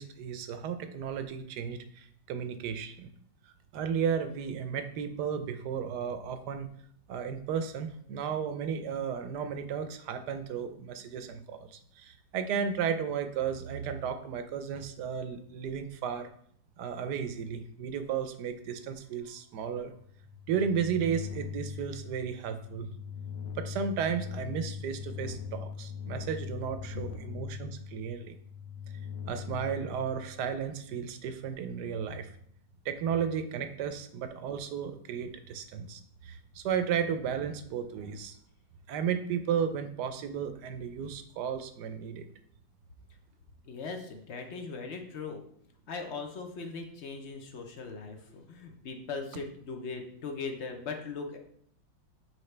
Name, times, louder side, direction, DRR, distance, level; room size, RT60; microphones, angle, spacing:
voice 1, 0.0-3.1 3.7-6.7 7.1-16.3 16.8-19.9 20.5-22.9 23.5-28.4 29.3-32.4 32.8-38.4 38.9-42.3, right 7 dB, 70° right, 9 dB, 1.2 m, -34 dB
sound 1, 20.0-30.6, left 7 dB, 85° left, 1.3 m, -41 dB
voice 2, 43.7-45.4 45.9-51.4, left 4 dB, 50° left, 4 dB, 0.8 m, -39 dB
7.9 x 4.5 x 3.3 m, 0.65 s
omnidirectional pair, 2.0 m